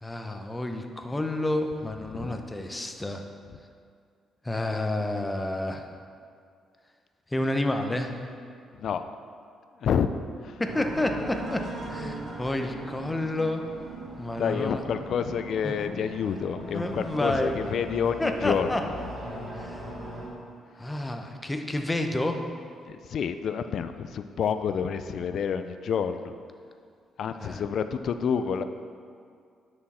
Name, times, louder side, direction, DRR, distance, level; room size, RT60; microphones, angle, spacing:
voice 1, 0.0-3.2 4.4-5.9 7.3-8.1 10.6-13.6 14.2-14.8 15.6-15.7 16.7-17.5 18.2-18.8 19.5-19.8 20.8-22.4 27.4-27.6, left 1 dB, 15° left, 5 dB, 0.8 m, -29 dB
voice 2, 8.7-9.1 9.8-10.1 10.4-10.6 14.4-18.9 22.9-26.3 27.2-28.6, left 7 dB, 65° left, 10 dB, 0.4 m, -29 dB
sound 1, 10.6-20.3, right 1 dB, 45° right, 2.3 m, -39 dB
9.7 x 6.3 x 4.3 m, 2.2 s
cardioid pair, 90°, 0 cm